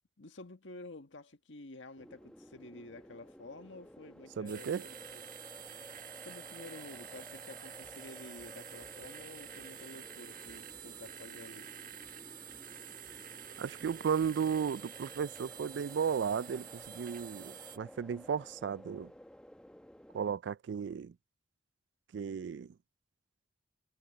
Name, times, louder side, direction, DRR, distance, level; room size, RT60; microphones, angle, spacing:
voice 1, 0.2-5.3 6.2-11.7, left 2 dB, 85° left, 1.7 m, -50 dB
sound 1, 2.0-20.3, equal, 5° left, 1.1 m, -54 dB
voice 2, 4.4-4.9 13.6-19.1 20.1-21.1 22.1-22.7, right 7 dB, 70° right, 0.3 m, -34 dB
sound 2, 4.5-17.8, right 9 dB, 45° right, 1.4 m, -49 dB
head